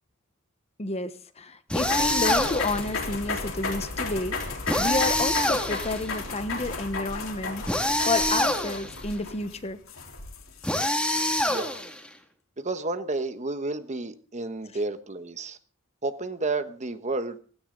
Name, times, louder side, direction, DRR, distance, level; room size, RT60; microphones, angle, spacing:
voice 1, 0.8-1.1 1.4-4.4 4.8-9.8, left 2 dB, 30° left, 1.1 m, -30 dB
sound 1, 1.7-2.8 4.7-6.1 7.7-9.0 10.6-12.1, left 1 dB, 5° left, 2.1 m, -26 dB
sound 2, 1.8-11.0, left 3 dB, 80° left, 3.7 m, -34 dB
voice 2, 11.5-11.8 12.6-15.6 16.0-17.4, right 3 dB, 35° right, 1.2 m, -31 dB
17.0 x 15.5 x 3.9 m
head